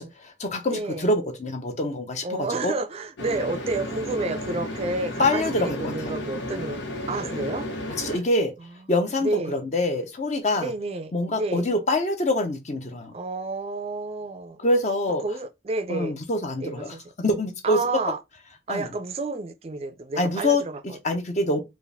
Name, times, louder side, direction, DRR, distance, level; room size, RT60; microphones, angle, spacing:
voice 1, 0.0-2.7 5.2-6.1 8.0-8.5 8.9-10.7 11.1-13.1 14.6-15.2 15.9-17.8 18.7-18.9 20.1-21.6, left 2 dB, 40° left, 0.9 m, -25 dB
voice 2, 0.7-1.1 2.2-6.8 7.1-7.7 8.0-8.2 9.2-9.6 10.5-11.6 13.1-14.6 15.2-16.1 16.6-17.0 17.6-18.2 18.7-21.0, right 3 dB, 35° right, 0.4 m, -30 dB
sound 1, 3.2-8.2, left 1 dB, 90° left, 1.2 m, -33 dB
4.5 x 2.5 x 3.4 m
head